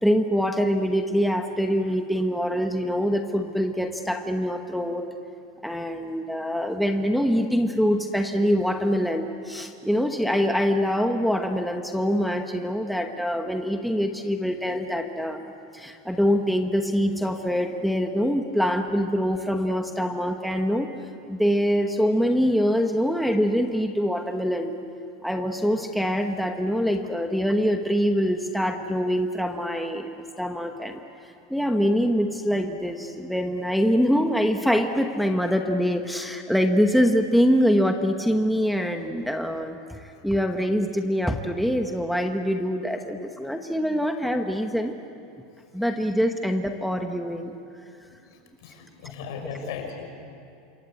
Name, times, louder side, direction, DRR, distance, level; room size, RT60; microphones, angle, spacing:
voice 1, 0.0-5.0 5.6-15.4 15.7-20.9 21.3-24.7 25.2-30.1 30.4-31.0 31.5-45.0 45.7-47.6, equal, ahead, 4 dB, 1.0 m, -24 dB
voice 2, 48.6-50.1, left 6 dB, 75° left, 4 dB, 5.5 m, -36 dB
27.5 x 22.5 x 8.4 m, 2.7 s
supercardioid pair, 165°, 2 cm